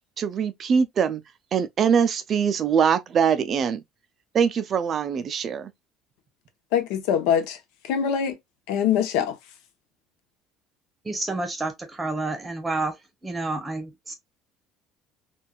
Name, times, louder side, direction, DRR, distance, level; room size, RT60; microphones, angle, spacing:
voice 1, 0.2-1.2 1.5-3.8 4.3-5.7, right 7 dB, 35° right, 0.3 m, -22 dB
voice 2, 6.7-7.6 7.8-8.4 8.7-9.4, left 8 dB, 80° left, 0.7 m, -23 dB
voice 3, 11.0-12.9 13.2-14.1, right 2 dB, 15° right, 0.8 m, -29 dB
3.3 x 2.3 x 2.3 m
cardioid pair, 135°, 0 cm